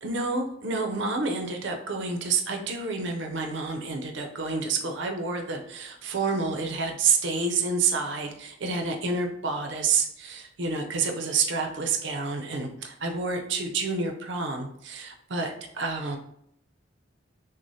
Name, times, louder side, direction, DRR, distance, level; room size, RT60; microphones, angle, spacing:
voice 1, 0.0-16.2, right 4 dB, 60° right, 4 dB, 0.5 m, -29 dB
6.1 x 2.1 x 2.7 m, 0.72 s
head